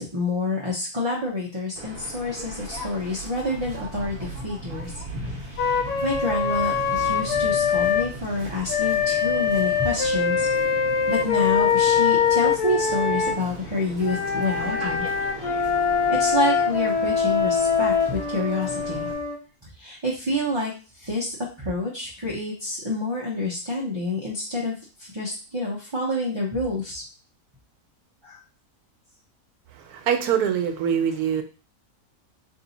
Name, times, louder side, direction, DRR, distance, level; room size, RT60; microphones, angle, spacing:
voice 1, 0.0-4.9 5.4-10.5 11.1-15.1 16.1-19.1 19.8-27.0 28.2-28.4, left 2 dB, 25° right, -5 dB, 0.6 m, -28 dB
Waves surf, 1.8-19.1, right 1 dB, 45° right, 1.0 m, -38 dB
Wind instrument woodwind instrument, 5.6-8.1 8.7-13.4 14.0-19.4, left 6 dB, 80° left, 1.2 m, -23 dB
voice 2, 29.7-31.4, right 8 dB, 80° right, 6 dB, 1.2 m, -24 dB
3.6 x 2.7 x 4.0 m, 0.35 s
omnidirectional pair, 1.6 m